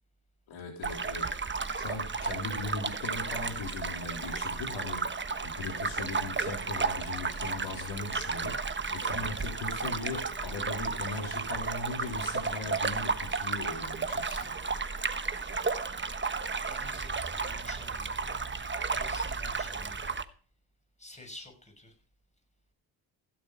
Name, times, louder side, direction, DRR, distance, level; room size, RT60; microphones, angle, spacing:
voice 1, 0.5-1.2 1.8-5.0 5.4-8.5 8.9-14.5, left 3 dB, 90° left, 3.3 m, -39 dB
sound 1, 0.8-20.2, right 4 dB, 25° right, 1.1 m, -33 dB
voice 2, 16.6-18.2 18.9-20.1 21.0-21.9, left 2 dB, 15° left, 6.5 m, -49 dB
15.5 x 7.9 x 5.3 m
cardioid pair, 65°, 47 cm